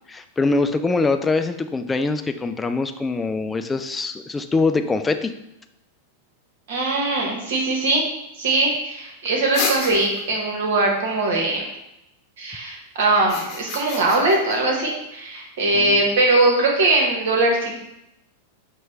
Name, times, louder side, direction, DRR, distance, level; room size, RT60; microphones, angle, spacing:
voice 1, 0.1-5.3 15.7-16.0, left 3 dB, 15° left, 8 dB, 0.3 m, -23 dB
voice 2, 6.7-8.0 8.4-11.7 12.4-17.8, right 2 dB, 65° right, 0 dB, 1.2 m, -21 dB
sound 1, 9.5-10.4 13.2-14.6, left 5 dB, 40° left, 0.8 m, -29 dB
5.8 x 2.2 x 3.2 m, 0.85 s
hypercardioid pair, 100°, 0 cm